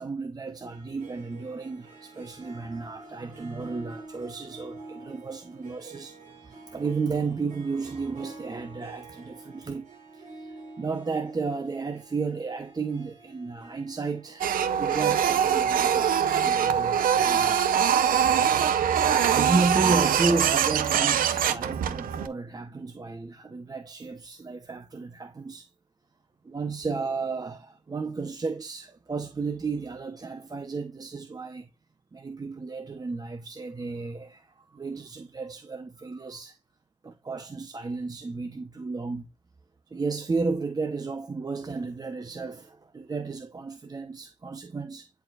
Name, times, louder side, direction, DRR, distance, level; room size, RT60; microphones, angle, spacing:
voice 1, 0.0-9.9 10.1-17.7 19.3-25.7 26.4-31.7 32.1-36.6 37.0-39.3 39.9-45.1, right 4 dB, 25° right, 0.7 m, -33 dB
Harp, 0.7-17.5, right 3 dB, 65° right, 4.0 m, -48 dB
Printer, 14.4-22.3, right 8 dB, 85° right, 0.7 m, -23 dB
10.5 x 4.6 x 2.4 m
cardioid pair, 100°, 14 cm